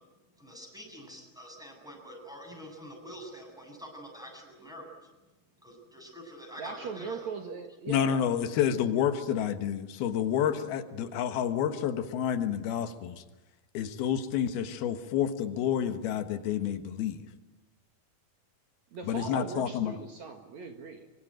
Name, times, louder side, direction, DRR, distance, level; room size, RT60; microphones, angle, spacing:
voice 1, 0.4-4.9 5.6-7.2, equal, ahead, 0 dB, 7.5 m, -46 dB
voice 2, 6.6-8.3 18.9-21.1, right 5 dB, 55° right, 5 dB, 2.7 m, -39 dB
voice 3, 7.9-13.2 13.7-17.2 19.1-19.9, left 9 dB, 90° left, 9 dB, 3.3 m, -29 dB
25.0 x 24.0 x 9.1 m, 1.1 s
omnidirectional pair, 4.3 m